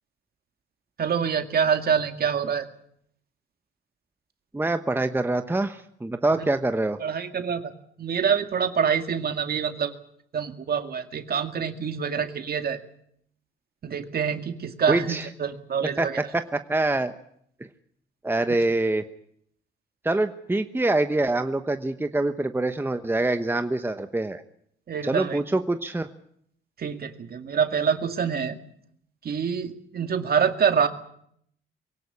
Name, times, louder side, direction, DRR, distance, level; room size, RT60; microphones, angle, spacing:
voice 1, 1.0-2.6 6.3-6.4 7.0-7.7 8.0-9.9 10.3-12.8 13.8-16.2 18.5-18.6 24.9-25.4 26.8-28.6 29.2-30.9, right 7 dB, 50° right, 7 dB, 2.1 m, -26 dB
voice 2, 4.5-7.0 14.9-15.3 16.0-17.1 18.2-19.0 20.0-24.4 25.0-26.1, right 2 dB, 10° right, 8 dB, 1.1 m, -25 dB
22.5 x 17.5 x 8.5 m, 0.69 s
cardioid pair, 90°, 20 cm